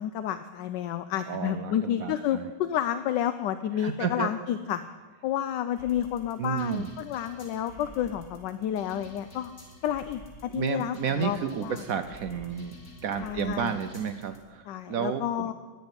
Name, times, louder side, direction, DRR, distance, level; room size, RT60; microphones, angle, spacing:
voice 1, 0.0-4.8 5.2-9.5 9.8-11.8 13.2-13.7 14.7-15.5, left 10 dB, 75° left, 11 dB, 1.2 m, -30 dB
voice 2, 1.3-2.5 3.8-4.3 6.4-6.9 10.5-12.8 13.0-15.5, right 7 dB, 65° right, 9 dB, 0.9 m, -31 dB
sound 1, 5.8-14.4, equal, 55° left, 3.0 m, -49 dB
11.0 x 7.9 x 9.6 m, 1.4 s
omnidirectional pair, 2.0 m